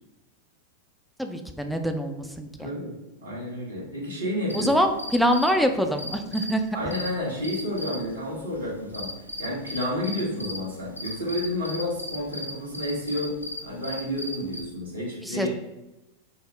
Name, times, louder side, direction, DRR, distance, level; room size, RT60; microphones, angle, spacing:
voice 1, 1.2-2.7 4.5-6.7 15.2-15.5, equal, ahead, 5 dB, 0.3 m, -25 dB
voice 2, 2.6-2.9 3.2-4.7 6.7-9.1 9.4-13.3 13.6-15.5, left 1 dB, 75° right, -5 dB, 1.3 m, -30 dB
sound 1, 4.5-14.6, left 1 dB, 85° left, 0.4 m, -38 dB
3.8 x 2.1 x 3.2 m, 0.98 s
figure-of-eight pair, 90°, 0 cm